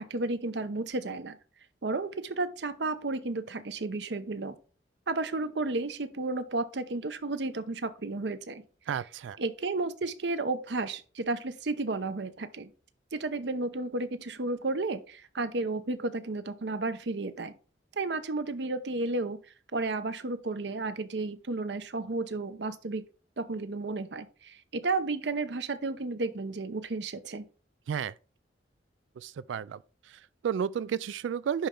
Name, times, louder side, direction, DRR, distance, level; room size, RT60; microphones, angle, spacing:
voice 1, 0.0-1.4 1.8-4.6 5.1-8.6 9.4-12.7 13.1-17.5 18.0-19.4 19.7-23.0 23.4-27.4, right 3 dB, 70° right, 0.7 m, -32 dB
voice 2, 8.9-9.4 27.9-28.1 29.2-29.8 30.1-31.7, right 8 dB, 90° right, 0.3 m, -32 dB
10.5 x 4.3 x 3.7 m
head